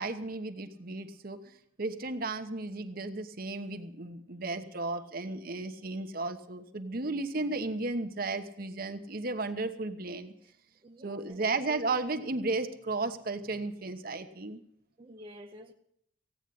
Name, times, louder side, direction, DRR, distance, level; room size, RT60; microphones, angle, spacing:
voice 1, 0.0-1.4 1.8-10.3 11.0-14.6, right 3 dB, 50° right, 1.1 m, -34 dB
voice 2, 10.8-11.5 15.0-15.7, equal, 30° right, 0.7 m, -50 dB
16.0 x 9.1 x 8.4 m
head